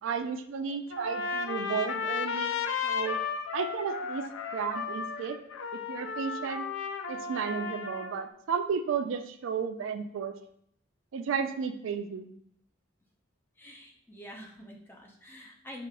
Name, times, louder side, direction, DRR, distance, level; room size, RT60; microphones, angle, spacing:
voice 1, 0.0-3.2 3.5-4.2 4.5-5.4 5.7-6.7 7.1-10.3 11.1-12.3, right 6 dB, 85° right, 8 dB, 0.3 m, -33 dB
Trumpet, 0.9-8.2, left 5 dB, 80° left, 0.4 m, -34 dB
voice 2, 13.6-15.9, left 1 dB, 10° left, -1 dB, 0.6 m, -46 dB
6.0 x 2.4 x 2.2 m, 0.69 s
head